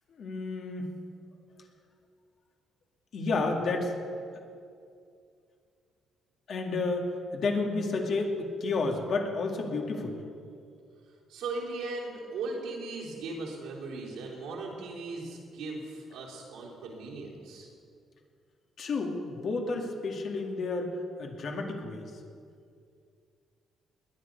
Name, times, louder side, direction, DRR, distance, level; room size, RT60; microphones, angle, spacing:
voice 1, 0.1-0.9 3.1-4.0 6.5-10.2 18.8-20.9 21.2-22.2, left 3 dB, 60° left, 2 dB, 2.3 m, -31 dB
voice 2, 11.1-17.7, right 3 dB, 90° right, -4 dB, 3.5 m, -38 dB
20.0 x 10.5 x 5.4 m, 2.4 s
cardioid pair, 100°, 0 cm